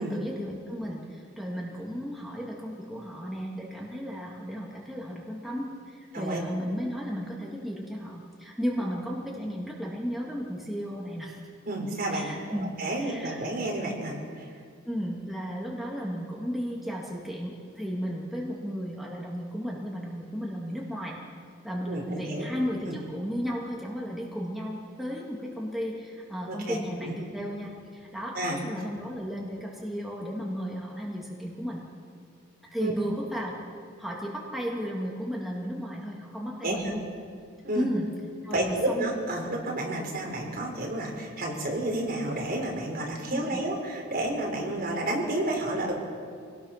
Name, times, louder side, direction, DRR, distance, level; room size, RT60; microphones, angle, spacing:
voice 1, 0.0-11.4 12.1-13.4 14.8-21.2 21.6-31.8 32.7-33.5 34.0-37.0 37.7-38.1 38.4-39.1 43.3-43.6, equal, ahead, -3 dB, 2.1 m, -34 dB
voice 2, 11.7-12.3 12.6-14.5 21.9-22.5 22.8-23.0 26.5-27.1 28.3-28.6 32.8-32.9 36.6-36.9 37.6-37.9 38.5-45.9, right 1 dB, 45° right, 0 dB, 4.1 m, -31 dB
26.0 x 18.5 x 5.8 m, 2.2 s
head